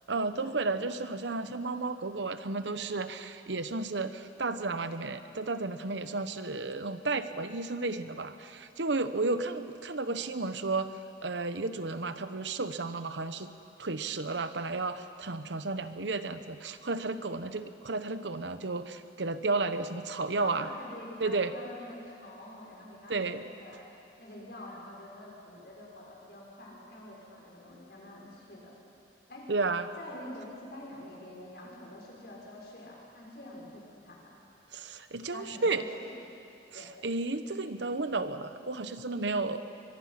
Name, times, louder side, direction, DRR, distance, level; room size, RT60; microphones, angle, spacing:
voice 1, 0.1-10.9 11.2-13.5 13.8-20.7 21.2-21.5 23.1-23.5 29.5-29.9 34.7-35.8 36.7-39.6, right 3 dB, 85° right, 10 dB, 1.0 m, -33 dB
voice 2, 20.4-23.8 24.2-28.7 29.3-29.5 30.0-34.3 35.3-36.1 36.7-36.9, left 1 dB, 65° left, -3 dB, 6.1 m, -46 dB
23.5 x 23.0 x 5.9 m, 2.7 s
head